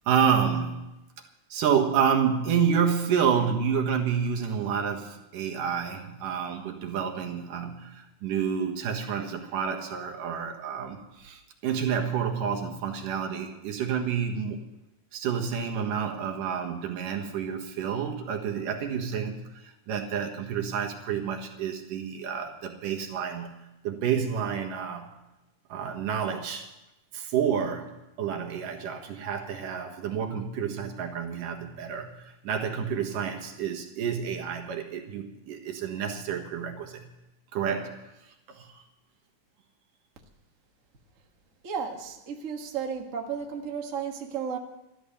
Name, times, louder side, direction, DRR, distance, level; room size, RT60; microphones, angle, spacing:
voice 1, 0.1-0.8 1.5-14.6 15.1-23.6 23.8-25.1 25.7-26.7 27.1-27.9 28.2-37.1 37.5-38.0 38.5-38.8, right 7 dB, 80° right, 3 dB, 3.1 m, -29 dB
voice 2, 41.6-44.6, right 6 dB, 40° right, 2 dB, 1.1 m, -33 dB
13.0 x 12.5 x 6.9 m, 0.95 s
omnidirectional pair, 3.7 m